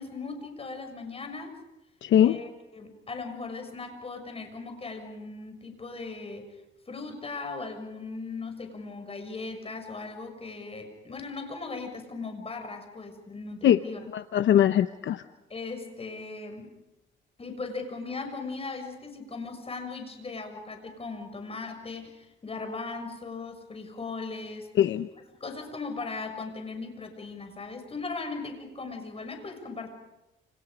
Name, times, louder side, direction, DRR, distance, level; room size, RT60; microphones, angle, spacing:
voice 1, 0.0-1.6 2.2-6.5 6.9-14.1 15.5-16.7 17.4-24.7 25.4-29.9, left 3 dB, 30° left, 5 dB, 6.7 m, -38 dB
voice 2, 2.0-2.4 13.6-13.8 14.1-15.2 24.8-25.1, left 10 dB, 70° left, 10 dB, 0.9 m, -21 dB
30.0 x 28.5 x 5.1 m, 0.91 s
cardioid pair, 90°, 20 cm